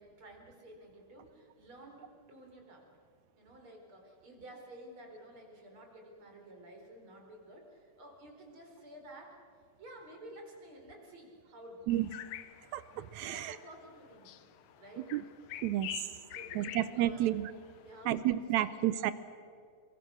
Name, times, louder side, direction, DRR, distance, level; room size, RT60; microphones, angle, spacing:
voice 1, 0.0-2.9 3.4-9.4 9.8-11.9 13.3-14.5 14.8-15.3 16.3-17.3 17.8-18.8, right 1 dB, 35° right, 1 dB, 4.9 m, -52 dB
sound 1, 11.9-18.0, left 12 dB, 70° left, 1.9 m, -47 dB
voice 2, 12.7-13.5 15.1-15.2 15.6-15.9 16.5-17.4 18.1-19.1, right 13 dB, 80° right, 15 dB, 1.6 m, -31 dB
28.0 x 23.5 x 6.4 m, 2.3 s
omnidirectional pair, 4.1 m